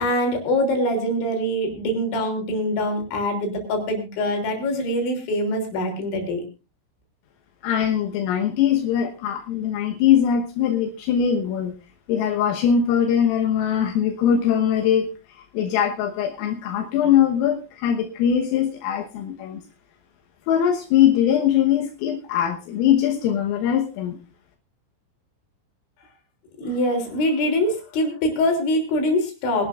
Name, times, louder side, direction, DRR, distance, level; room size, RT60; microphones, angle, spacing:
voice 1, 0.0-6.4 26.6-29.7, left 1 dB, 65° left, 3 dB, 5.5 m, -24 dB
voice 2, 7.6-11.7 12.1-19.6 20.5-24.2, left 9 dB, 85° left, 2 dB, 3.9 m, -21 dB
23.5 x 11.5 x 2.5 m, 0.30 s
omnidirectional pair, 5.8 m